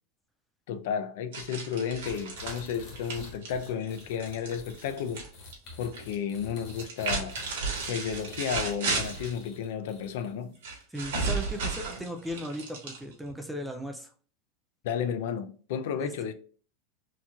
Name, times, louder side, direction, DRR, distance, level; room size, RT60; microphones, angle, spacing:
voice 1, 0.7-5.3 5.8-7.4 7.9-10.6 14.8-16.3, left 7 dB, 60° left, 0.5 m, -32 dB
sound 1, 1.3-5.3 5.5-6.1 6.7-9.4 10.6-13.3, right 4 dB, 75° right, 1.8 m, -34 dB
sound 2, 2.0-10.5, left 2 dB, 25° left, 1.3 m, -49 dB
voice 2, 10.9-14.1 16.0-16.1, equal, 5° right, 0.3 m, -37 dB
4.4 x 2.9 x 2.3 m
supercardioid pair, 180°, 0 cm